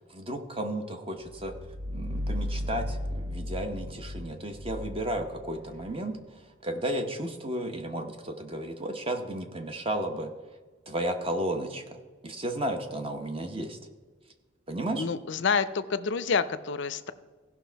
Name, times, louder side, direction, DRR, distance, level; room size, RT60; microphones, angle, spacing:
voice 1, 0.1-1.5 1.9-10.3 10.9-13.8 14.7-15.1, right 1 dB, 25° right, 6 dB, 0.9 m, -33 dB
sound 1, 1.3-5.9, left 1 dB, 75° right, 1.3 m, -35 dB
voice 2, 14.9-17.1, left 5 dB, 60° left, 13 dB, 0.5 m, -28 dB
15.5 x 5.8 x 4.6 m, 1.4 s
head